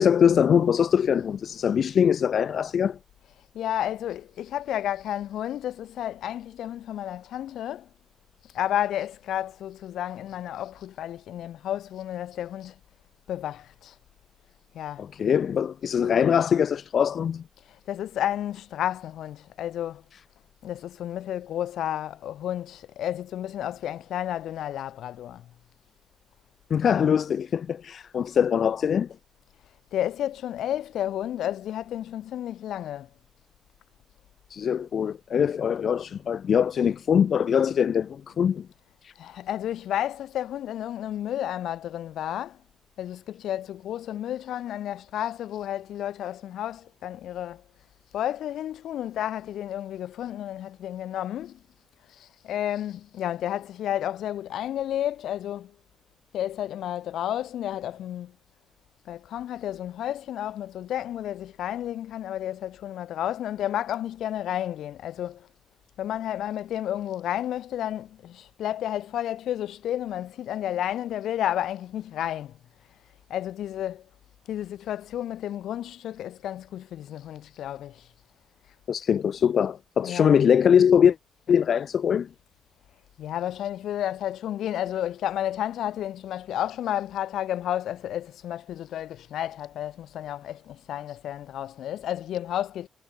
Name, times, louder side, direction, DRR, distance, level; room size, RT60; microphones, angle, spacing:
voice 1, 0.0-3.0 15.0-17.4 26.7-29.1 34.5-38.7 39.0-39.1 78.9-81.2 81.5-82.3, left 8 dB, 55° left, 1.0 m, -22 dB
voice 2, 3.5-7.9 8.5-12.8 13.3-13.9 14.7-15.0 17.7-20.0 20.6-25.5 29.9-33.1 39.2-42.6 43.0-47.6 48.1-51.6 52.1-55.7 56.3-58.3 59.1-65.5 66.0-72.6 73.3-74.1 74.5-78.1 80.0-80.4 83.2-92.9, left 11 dB, 75° left, 4.6 m, -31 dB
cardioid pair, 90°, 0 cm